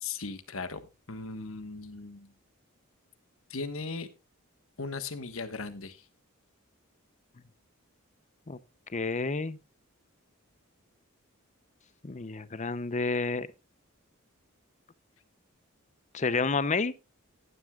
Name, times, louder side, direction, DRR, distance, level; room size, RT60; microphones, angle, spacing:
voice 1, 0.0-2.3 3.5-4.1 4.8-6.0, left 4 dB, 70° left, 1.4 m, -38 dB
voice 2, 8.9-9.6 12.0-13.5 16.1-16.9, left 4 dB, 35° left, 0.7 m, -29 dB
15.5 x 11.0 x 2.4 m
head